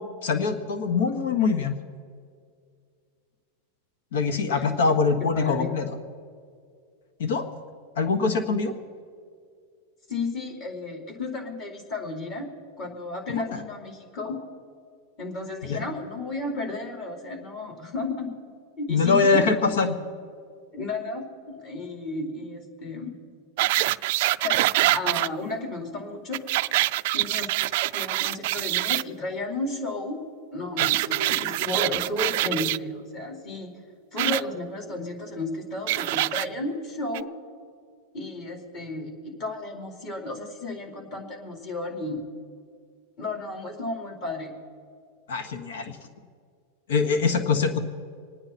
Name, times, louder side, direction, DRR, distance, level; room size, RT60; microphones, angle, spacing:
voice 1, 0.0-1.7 4.1-6.0 7.2-7.4 8.0-8.7 13.3-13.6 15.6-15.8 18.9-20.0 30.8-31.6 45.3-46.0 46.9-47.8, left 4 dB, 80° left, 8 dB, 1.5 m, -24 dB
voice 2, 5.3-5.7 10.1-12.5 12.8-14.4 15.2-18.3 18.8-19.4 20.7-23.2 24.4-26.4 27.1-27.6 27.9-30.2 30.5-33.7 34.1-37.3 38.1-39.1 39.4-42.2 43.2-44.5, left 2 dB, 40° left, 0 dB, 4.4 m, -33 dB
sound 1, 23.6-25.3 26.3-29.0 30.8-32.8 34.2-34.4 35.9-36.5 37.1-37.2, right 18 dB, 60° right, 0.3 m, -24 dB
27.0 x 9.7 x 4.4 m, 2.2 s
supercardioid pair, 135°, 0 cm